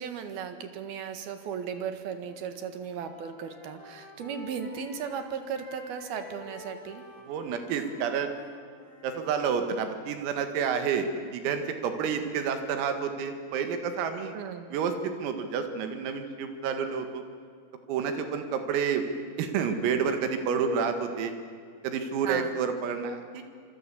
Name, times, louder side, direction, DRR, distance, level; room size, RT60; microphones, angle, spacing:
voice 1, 0.0-7.0 9.8-9.9 12.2-12.3 14.3-14.7 22.2-22.5, right 7 dB, 60° right, 8 dB, 2.9 m, -36 dB
Wind instrument woodwind instrument, 2.1-2.5 2.8-9.3, left 2 dB, 40° left, 6.2 m, -49 dB
voice 2, 7.3-8.3 9.0-11.1 11.3-14.3 14.7-17.2 17.9-19.0 19.4-21.3 21.8-23.4, right 6 dB, 85° right, 7 dB, 4.7 m, -29 dB
26.5 x 24.5 x 8.5 m, 2.1 s
omnidirectional pair, 6.0 m